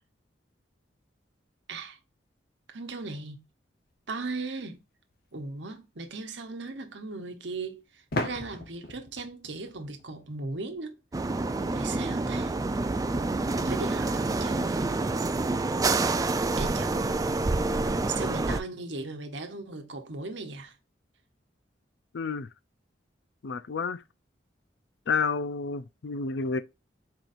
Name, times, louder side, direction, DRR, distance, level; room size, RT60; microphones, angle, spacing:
voice 1, 2.7-3.4 4.1-4.8 5.3-10.9 11.7-12.5 13.6-14.9 16.6-17.1 18.2-20.7, right 3 dB, 70° right, 1.0 m, -38 dB
sound 1, 5.1-5.2 8.1-10.8, left 2 dB, 55° left, 0.9 m, -36 dB
sound 2, 11.1-18.6, right 3 dB, 20° right, 0.3 m, -27 dB
voice 2, 22.1-22.5 23.4-24.0 25.1-26.6, left 5 dB, 70° left, 0.5 m, -30 dB
4.6 x 4.0 x 2.5 m
head